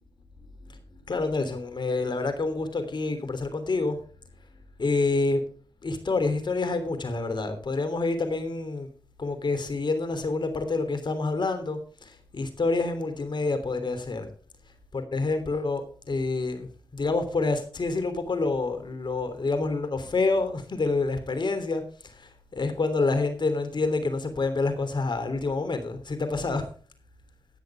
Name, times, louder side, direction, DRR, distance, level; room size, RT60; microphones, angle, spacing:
voice 1, 1.0-4.0 4.8-5.4 5.8-8.9 9.2-14.3 14.9-26.7, left 3 dB, 60° left, 3.3 m, -28 dB
14.5 x 9.7 x 3.6 m
cardioid pair, 45°, 9 cm